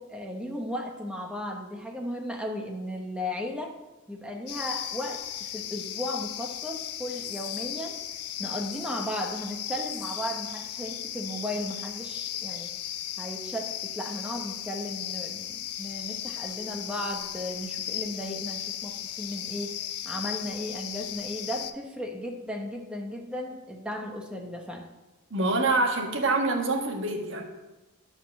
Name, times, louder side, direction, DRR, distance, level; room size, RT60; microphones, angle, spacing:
voice 1, 0.0-3.7 4.1-8.0 8.4-12.7 13.2-19.7 20.0-24.9, left 1 dB, 5° right, 2 dB, 1.1 m, -35 dB
sound 1, 4.5-21.7, left 11 dB, 90° left, 0.6 m, -36 dB
voice 2, 25.3-27.4, right 2 dB, 55° right, 2 dB, 1.6 m, -26 dB
11.0 x 4.3 x 7.2 m, 1.1 s
head